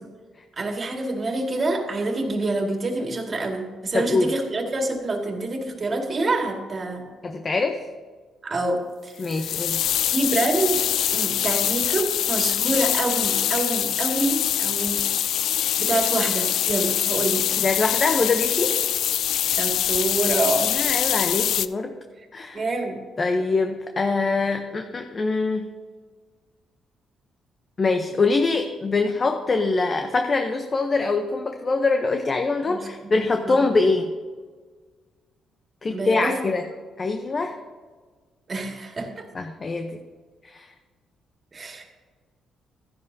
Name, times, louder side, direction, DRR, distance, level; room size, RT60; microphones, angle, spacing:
voice 1, 0.6-7.0 8.4-9.2 10.1-10.8 11.1-15.0 15.8-17.4 19.5-20.7 22.5-23.0 32.6-33.6 35.9-36.4 38.5-39.2 41.5-41.8, right 2 dB, 40° right, 2 dB, 2.0 m, -26 dB
voice 2, 3.9-4.3 7.2-7.8 9.2-9.8 17.6-18.7 20.6-21.9 22.3-22.6 23.2-25.7 27.8-34.1 35.8-36.6 37.0-37.6 39.3-40.0 40.4-40.7, left 3 dB, 35° left, 5 dB, 0.8 m, -24 dB
sound 1, 9.2-21.7, left 11 dB, 75° left, 0.3 m, -24 dB
14.0 x 10.5 x 2.7 m, 1.4 s
cardioid pair, 90°, 0 cm